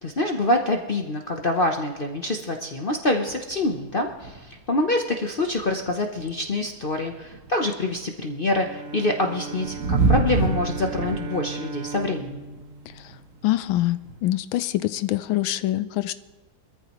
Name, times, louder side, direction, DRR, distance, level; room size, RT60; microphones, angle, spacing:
voice 1, 0.0-12.4, left 2 dB, 45° left, 3 dB, 0.7 m, -26 dB
sound 1, 3.3-4.6 4.9-5.0 5.3-8.1 8.7-14.2, right 4 dB, 45° right, 1.4 m, -29 dB
Bowed string instrument, 8.6-13.8, right 4 dB, 85° right, 0.5 m, -37 dB
voice 2, 13.4-16.1, left 15 dB, 85° left, 14 dB, 1.4 m, -24 dB
22.0 x 14.0 x 3.1 m, 1.2 s
omnidirectional pair, 2.1 m